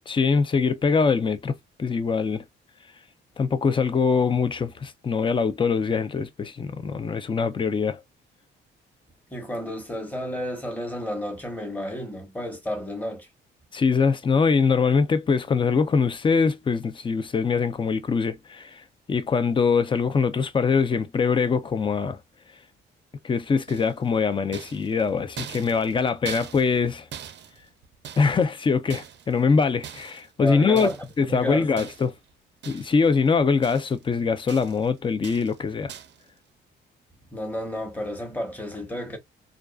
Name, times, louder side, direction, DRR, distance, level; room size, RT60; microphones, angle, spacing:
voice 1, 0.1-1.5 1.8-2.4 3.4-8.0 13.7-22.2 23.2-27.1 28.2-32.1 32.7-35.9, left 5 dB, 25° left, 0.5 m, -23 dB
voice 2, 9.3-13.3 30.4-31.7 37.3-39.2, equal, 10° left, 1.0 m, -31 dB
sound 1, 23.7-24.1 24.5-26.9 27.1-28.5 28.9-29.4 29.8-30.3 30.8-31.2 31.8-32.2 32.6-33.1 33.4-34.1 34.5-34.9 35.2-35.6 35.9-36.2, right 9 dB, 65° right, 0.5 m, -42 dB
2.4 x 2.3 x 2.3 m
cardioid pair, 90°, 20 cm